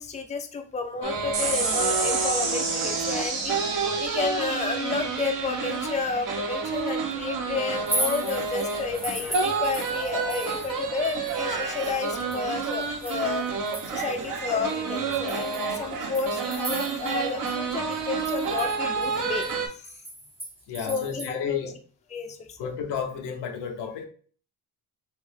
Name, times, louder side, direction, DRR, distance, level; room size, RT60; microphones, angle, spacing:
voice 1, 0.0-3.6 4.0-13.4 13.9-19.9 20.8-21.7 22.1-22.7, left 4 dB, 15° left, 5 dB, 0.5 m, -31 dB
sound 1, 1.0-19.7, right 4 dB, 50° right, 0.8 m, -30 dB
sound 2, 1.3-8.1, right 4 dB, 85° right, 1.1 m, -31 dB
sound 3, 7.7-10.8 11.0-14.2 14.7-14.8 15.3-17.2 17.5-17.6 17.9-21.3, right 1 dB, 15° right, 0.8 m, -36 dB
voice 2, 20.7-21.7 22.6-24.0, left 7 dB, 80° left, 3 dB, 0.9 m, -31 dB
3.4 x 2.6 x 3.4 m, 0.43 s
cardioid pair, 85°, 41 cm